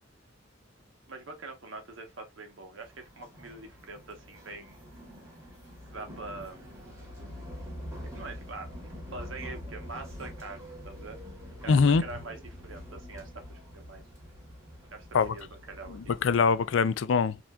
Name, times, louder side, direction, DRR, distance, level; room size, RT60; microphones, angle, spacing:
voice 1, 1.1-4.8 5.9-6.6 8.1-11.2 11.6-14.0 14.9-16.1, right 3 dB, 80° right, 1.1 m, -44 dB
sound 1, 2.8-16.5, equal, 15° right, 1.7 m, -45 dB
voice 2, 11.7-12.0 15.1-15.3 15.9-17.4, left 5 dB, 70° left, 0.4 m, -23 dB
4.3 x 2.6 x 2.3 m
head